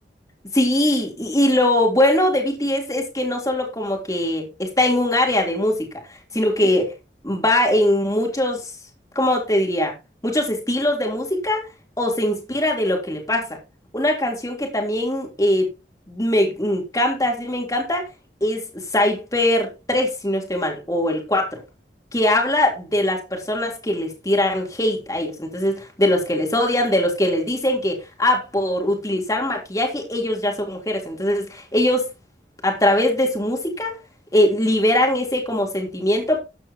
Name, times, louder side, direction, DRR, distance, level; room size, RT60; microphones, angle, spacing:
voice 1, 0.5-5.9 6.3-6.9 7.2-8.7 9.2-10.0 10.2-11.7 12.0-13.6 13.9-15.7 16.1-18.1 18.4-21.6 22.1-32.1 32.6-34.0 34.3-36.4, left 1 dB, 20° left, 3.4 m, -21 dB
13.5 x 9.7 x 3.0 m
head